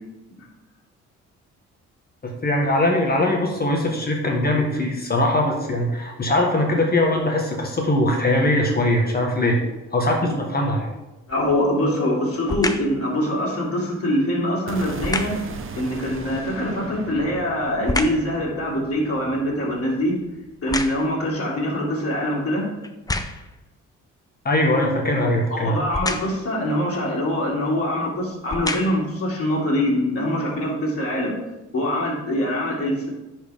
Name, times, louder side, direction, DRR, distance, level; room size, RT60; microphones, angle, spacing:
voice 1, 2.2-9.6 9.9-10.9 24.4-25.8, left 1 dB, 30° left, 0 dB, 1.5 m, -21 dB
voice 2, 11.3-15.3 15.8-20.2 20.6-22.7 25.5-31.3 31.7-33.1, left 1 dB, 50° left, -4 dB, 2.9 m, -24 dB
sound 1, 11.3-11.7 12.4-13.0 15.0-15.5 16.9-18.3 18.8-21.3 22.0-22.1 22.8-23.6 25.9-26.5 27.5-27.6 28.3-29.1 29.8-29.9, left 2 dB, 10° left, 0.6 m, -29 dB
sound 2, 14.7-20.7, right 5 dB, 45° right, 0.9 m, -38 dB
10.0 x 4.6 x 3.6 m, 1.0 s
cardioid pair, 90°, 30 cm